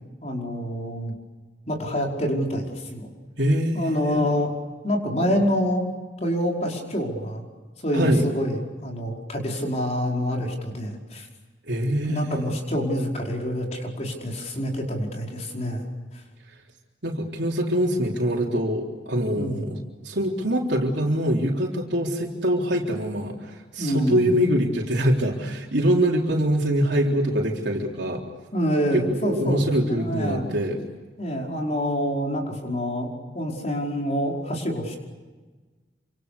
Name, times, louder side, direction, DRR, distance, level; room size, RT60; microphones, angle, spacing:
voice 1, 0.2-1.1 1.7-3.1 3.7-4.5 4.8-5.8 6.2-7.4 7.8-11.3 12.0-15.8 19.3-19.8 23.8-24.3 28.5-30.6 31.2-35.0, equal, 35° left, 1 dB, 5.1 m, -27 dB
voice 2, 3.4-4.3 7.9-8.2 11.7-12.6 17.0-19.8 20.0-28.2 29.1-30.8, equal, 70° right, -1 dB, 3.7 m, -24 dB
28.5 x 26.5 x 6.8 m, 1.3 s
head